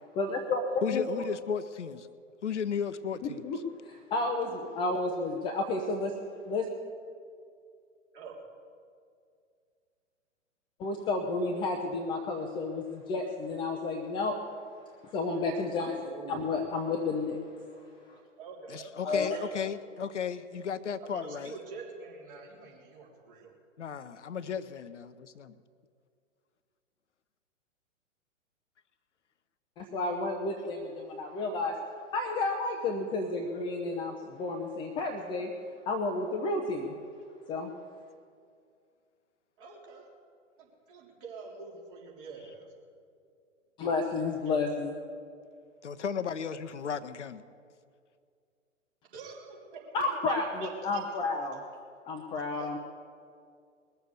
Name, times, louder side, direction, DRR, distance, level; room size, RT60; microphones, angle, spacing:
voice 1, 0.1-1.1 3.2-3.6 3.8-6.2 6.5-6.7 10.8-14.4 15.0-17.4 18.1-18.2 19.0-19.4 29.8-31.7 32.1-35.5 35.9-36.9 37.5-37.7 43.8-44.9 49.9-51.6 52.1-52.8, left 3 dB, 15° left, 2 dB, 0.5 m, -31 dB
voice 2, 0.8-2.1 2.4-3.6 18.7-21.5 23.8-25.5 45.8-47.4, left 7 dB, 65° left, 12 dB, 0.7 m, -35 dB
voice 3, 16.0-16.6 18.4-19.5 21.0-23.5 39.6-40.0 40.6-42.7 44.4-44.8 49.1-50.4 50.6-51.0 52.5-52.7, right 4 dB, 45° right, -2 dB, 3.4 m, -46 dB
20.5 x 6.9 x 8.1 m, 2.3 s
figure-of-eight pair, 110°, 38 cm